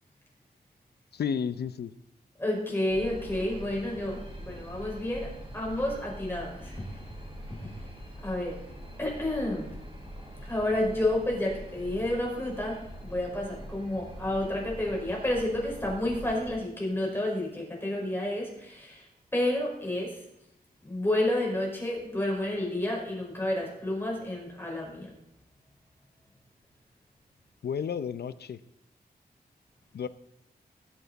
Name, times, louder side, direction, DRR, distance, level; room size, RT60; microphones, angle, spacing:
voice 1, 1.1-1.9 27.6-28.6 29.9-30.1, left 7 dB, 85° left, 14 dB, 0.7 m, -32 dB
voice 2, 2.4-7.0 7.6-7.7 8.2-8.6 9.0-9.7 10.4-19.1 19.3-20.2 20.8-25.1, left 1 dB, 15° left, -2 dB, 5.1 m, -30 dB
sound 1, 2.9-16.6, equal, 30° right, 4.4 m, -44 dB
21.0 x 8.2 x 4.1 m, 0.84 s
wide cardioid pair, 135°, 16 cm